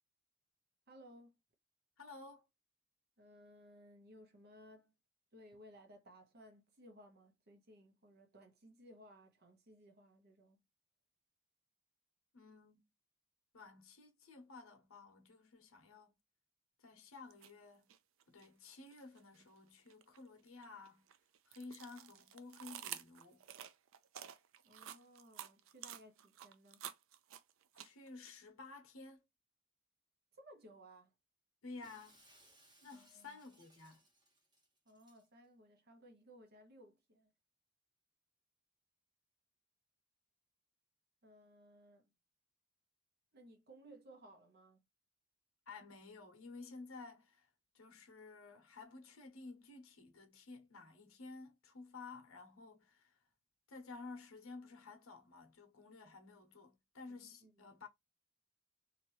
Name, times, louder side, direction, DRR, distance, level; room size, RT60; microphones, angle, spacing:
voice 1, 0.9-1.4 3.2-4.9 5.3-10.6 24.6-26.9 30.3-31.1 32.9-33.4 34.8-37.3 41.2-42.1 43.3-44.8 57.1-57.8, equal, 50° right, 1.0 m, -60 dB
voice 2, 2.0-2.4 12.3-12.9 13.5-16.1 16.8-17.9 18.3-21.1 21.5-23.4 27.8-29.2 31.6-32.2 32.8-34.0 45.7-47.5 47.7-53.2 53.7-57.9, left 3 dB, 85° left, 1.0 m, -53 dB
sound 1, 17.3-17.5 17.9-19.4 19.9-28.3, right 10 dB, 70° right, 0.4 m, -50 dB
Shatter, 31.8-35.3, right 1 dB, 20° right, 1.1 m, -68 dB
2.9 x 2.6 x 3.0 m
head